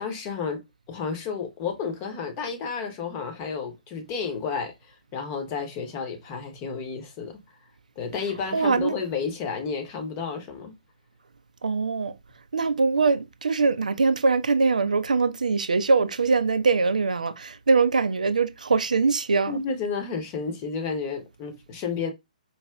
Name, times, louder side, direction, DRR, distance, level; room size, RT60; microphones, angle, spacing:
voice 1, 0.0-7.4 8.0-10.7 19.5-22.1, left 5 dB, 25° left, 0.9 m, -31 dB
voice 2, 8.5-8.9 11.6-12.1 12.5-19.6, right 4 dB, 65° right, 0.4 m, -22 dB
4.6 x 2.8 x 2.2 m
figure-of-eight pair, 125°, 4 cm